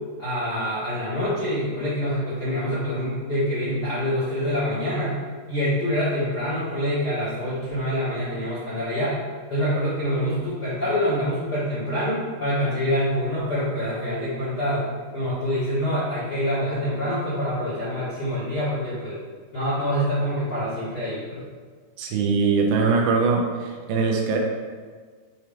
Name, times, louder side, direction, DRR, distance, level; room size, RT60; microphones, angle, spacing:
voice 1, 0.2-5.2 5.5-9.2 9.5-14.8 15.1-19.2 19.5-21.4, equal, 40° left, -12 dB, 1.4 m, -26 dB
voice 2, 22.0-24.4, right 4 dB, 75° right, 1 dB, 2.4 m, -22 dB
7.1 x 4.5 x 3.4 m, 1.5 s
omnidirectional pair, 4.7 m